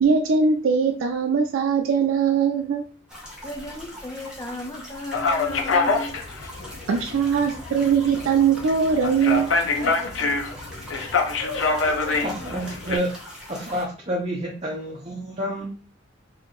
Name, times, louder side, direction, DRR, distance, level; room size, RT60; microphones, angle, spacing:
voice 1, 0.0-2.8 6.9-9.5, right 6 dB, 80° right, 3 dB, 0.4 m, -21 dB
sound 1, 3.1-13.8, equal, 5° right, 0.9 m, -42 dB
voice 2, 3.4-6.1 6.4-6.8, left 2 dB, 15° left, 4 dB, 0.5 m, -35 dB
sound 2, 5.1-13.0, left 3 dB, 65° left, 0.6 m, -26 dB
voice 3, 12.2-13.1 13.5-15.8, equal, 30° right, -4 dB, 0.7 m, -29 dB
2.9 x 2.6 x 3.7 m, 0.40 s
head